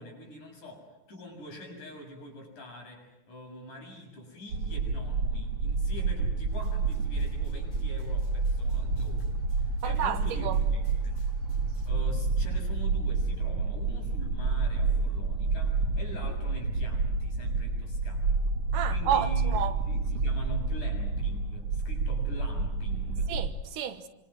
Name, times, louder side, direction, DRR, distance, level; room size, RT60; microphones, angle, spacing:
voice 1, 0.0-11.2 11.9-18.5 18.9-23.3, left 1 dB, 60° left, 8.4 m, -45 dB
sound 1, 4.5-23.5, right 4 dB, 45° right, 3.0 m, -29 dB
sound 2, 6.5-11.9, left 4 dB, 35° left, 3.1 m, -47 dB
voice 2, 9.8-10.6 18.7-19.8 23.3-24.1, right 9 dB, 75° right, 2.7 m, -31 dB
28.0 x 26.0 x 6.4 m
omnidirectional pair, 4.0 m